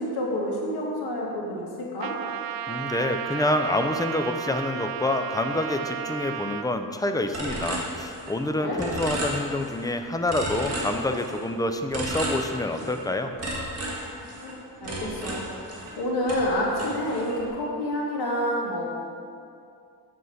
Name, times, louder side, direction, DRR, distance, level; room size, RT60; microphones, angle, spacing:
voice 1, 0.0-2.2 8.6-8.9 14.4-18.8, left 1 dB, 80° left, -4 dB, 2.1 m, -29 dB
Trumpet, 2.0-6.7, right 10 dB, 65° right, 0.5 m, -33 dB
voice 2, 2.7-13.3, left 2 dB, 10° left, 6 dB, 0.4 m, -27 dB
sound 1, 7.3-8.5 8.8-9.9 10.3-11.5 11.9-13.0 13.4-16.0 16.3-17.4, right 1 dB, 40° right, 1.8 m, -33 dB
7.9 x 5.4 x 6.4 m, 2.4 s
wide cardioid pair, 150°, 38 cm